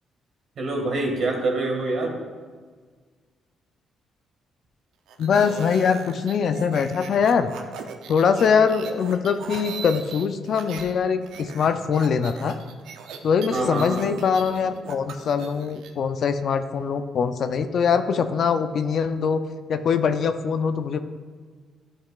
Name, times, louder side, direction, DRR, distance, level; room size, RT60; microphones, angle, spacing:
voice 1, 0.6-2.2 13.5-14.0, right 2 dB, 60° right, 1 dB, 1.8 m, -25 dB
sound 1, 5.1-10.9 11.2-15.9, right 6 dB, 85° right, 0.6 m, -39 dB
voice 2, 5.2-7.5 8.1-12.6 13.2-19.4 19.7-21.0, left 6 dB, 60° left, 9 dB, 0.5 m, -22 dB
sound 2, 13.3-16.3, left 3 dB, 35° left, 1.6 m, -41 dB
12.0 x 5.5 x 2.4 m, 1.5 s
cardioid pair, 90°, 0 cm